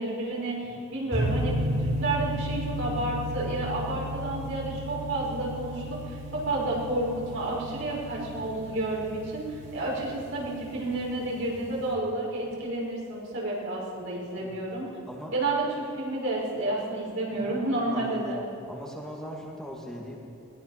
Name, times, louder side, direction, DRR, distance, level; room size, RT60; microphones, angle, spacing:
voice 1, 0.0-14.9 15.3-15.6 15.9-18.4, right 2 dB, 65° right, -4 dB, 6.2 m, -30 dB
sound 1, 1.1-11.9, equal, 40° right, 4.4 m, -34 dB
voice 2, 17.8-18.4 18.7-20.2, equal, ahead, -3 dB, 2.4 m, -40 dB
21.5 x 20.0 x 6.1 m, 2.6 s
head